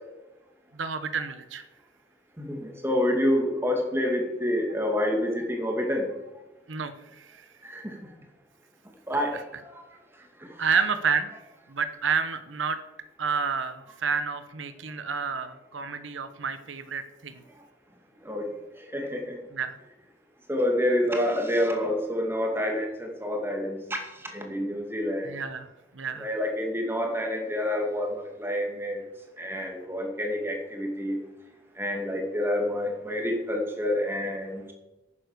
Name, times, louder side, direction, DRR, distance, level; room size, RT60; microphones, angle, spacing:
voice 1, 0.7-1.6 6.7-7.5 9.3-9.4 10.6-11.3 11.7-12.8 13.2-17.4 19.5-19.8 25.2-25.7 25.9-26.3, right 5 dB, 85° right, 11 dB, 0.9 m, -29 dB
voice 2, 2.4-6.1 7.6-7.9 9.1-9.4 9.7-9.8 18.2-18.5 18.9-19.2 20.5-24.0 24.3-25.3 26.2-28.1 28.4-29.0 29.4-31.2 31.8-34.7, left 1 dB, 10° right, 2 dB, 2.4 m, -28 dB
11.0 x 9.4 x 6.7 m, 1.0 s
head